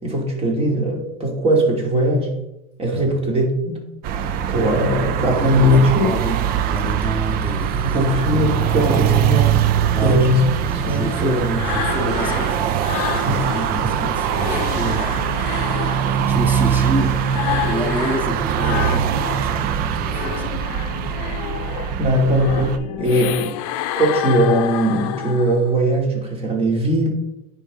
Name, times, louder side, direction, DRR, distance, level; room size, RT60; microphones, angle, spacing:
voice 1, 0.0-2.3 2.8-3.8 4.5-6.1 7.8-10.4 10.7-11.4 13.2-13.5 13.7-13.9 14.7-14.9 21.6-21.7 22.0-23.6 24.0-27.1, equal, 30° right, 0 dB, 2.9 m, -20 dB
sound 1, 4.0-22.8, right 9 dB, 50° right, 0.7 m, -22 dB
voice 2, 5.3-6.4 6.7-8.1 9.9-10.3 10.6-12.6 12.9-20.6 21.1-21.2 21.8-22.2, right 1 dB, 10° right, 3 dB, 1.9 m, -29 dB
sound 2, 10.3-13.8 14.1-19.5 19.9-25.8, left 12 dB, 65° left, 0.6 m, -29 dB
9.7 x 5.2 x 3.8 m, 0.91 s
hypercardioid pair, 85°, 19 cm